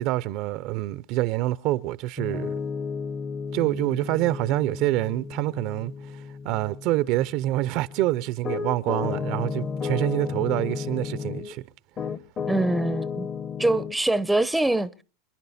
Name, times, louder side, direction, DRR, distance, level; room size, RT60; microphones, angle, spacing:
voice 1, 0.0-2.5 3.5-5.9 6.4-11.6, right 16 dB, 55° right, 0.7 m, -26 dB
Piano, 2.2-11.5 12.0-14.0, left 5 dB, 30° left, 1.0 m, -33 dB
voice 2, 12.5-13.3 13.6-15.0, right 2 dB, 5° right, 0.7 m, -24 dB
28.5 x 10.5 x 4.2 m
hypercardioid pair, 110°, 0 cm